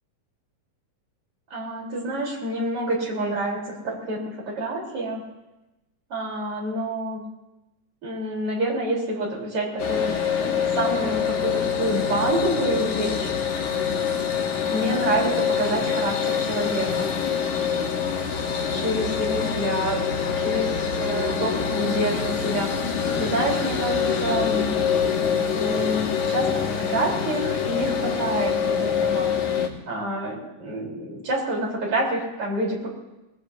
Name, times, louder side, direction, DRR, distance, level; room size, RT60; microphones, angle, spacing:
voice 1, 1.5-5.2 6.1-7.2 8.0-13.3 14.7-17.1 18.7-22.7 23.2-24.8 25.5-26.5 26.8-29.3 29.9-32.9, right 1 dB, 45° right, -3 dB, 4.8 m, -27 dB
sound 1, 9.8-29.7, left 7 dB, 70° left, 3.1 m, -25 dB
24.5 x 19.0 x 2.8 m, 1.0 s
omnidirectional pair, 3.6 m